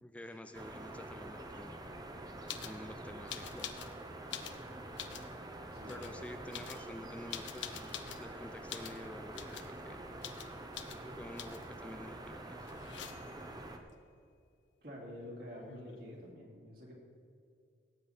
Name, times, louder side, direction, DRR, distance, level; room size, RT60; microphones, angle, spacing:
voice 1, 0.0-1.8 2.6-3.7 5.9-10.0 11.0-12.7, left 1 dB, 5° left, 7 dB, 0.3 m, -49 dB
sound 1, 0.5-13.8, right 1 dB, 20° right, 0.8 m, -47 dB
sound 2, 2.5-2.8 3.3-3.9 4.2-5.3 5.8-6.1 6.5-8.3 8.7-9.0 9.3-9.7 10.2-10.5 10.7-11.0 11.4-11.7 12.7-13.4 15.2-15.3 15.5-16.1, left 9 dB, 80° left, 0.8 m, -45 dB
voice 2, 5.7-6.2 14.8-16.9, equal, 55° right, -2 dB, 2.8 m, -48 dB
17.5 x 8.4 x 4.3 m, 2.4 s
head